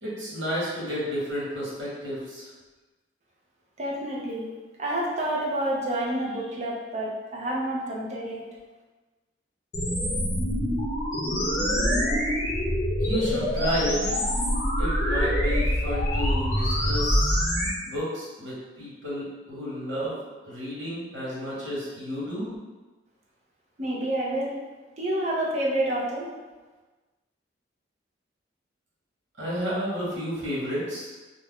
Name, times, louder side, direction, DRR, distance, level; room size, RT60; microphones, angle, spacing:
voice 1, 0.0-2.5 13.0-14.2 14.8-17.4 17.8-22.5 29.4-31.1, equal, 85° right, -7 dB, 1.1 m, -31 dB
voice 2, 3.8-4.5 4.8-8.4 23.8-24.6 25.0-26.3, right 1 dB, 35° right, -4 dB, 0.5 m, -28 dB
sound 1, 9.7-17.7, equal, 40° left, 0.6 m, -25 dB
2.4 x 2.1 x 3.4 m, 1.2 s
head